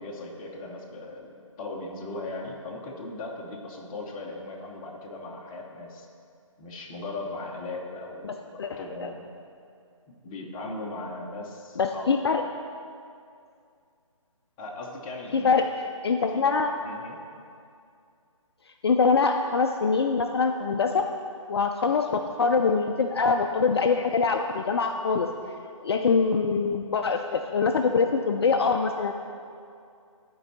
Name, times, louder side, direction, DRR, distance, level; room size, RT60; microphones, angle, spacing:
voice 1, 0.0-6.1 6.6-9.3 10.2-12.1 14.6-15.7 16.3-16.6 16.8-17.2, left 2 dB, 15° left, -2 dB, 0.7 m, -38 dB
voice 2, 8.2-8.8 11.8-12.4 15.3-15.7 16.0-16.7 18.8-21.0 21.5-25.3 25.8-29.1, left 5 dB, 50° left, 4 dB, 0.4 m, -24 dB
12.0 x 4.6 x 4.2 m, 2.4 s
figure-of-eight pair, 155°, 17 cm